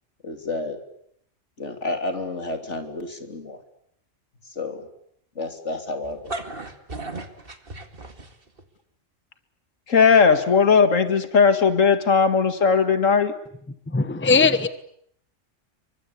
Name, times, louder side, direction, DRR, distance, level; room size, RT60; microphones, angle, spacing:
voice 1, 0.2-0.8 1.6-3.6 4.4-4.9 5.4-6.4, left 2 dB, 65° left, 6 dB, 3.7 m, -31 dB
sound 1, 6.0-8.6, right 2 dB, 45° right, 2.4 m, -35 dB
voice 2, 9.9-13.3, left 5 dB, 85° left, 9 dB, 2.3 m, -17 dB
voice 3, 13.9-14.7, left 4 dB, 10° left, 13 dB, 1.1 m, -19 dB
28.5 x 24.5 x 8.4 m, 0.71 s
omnidirectional pair, 1.3 m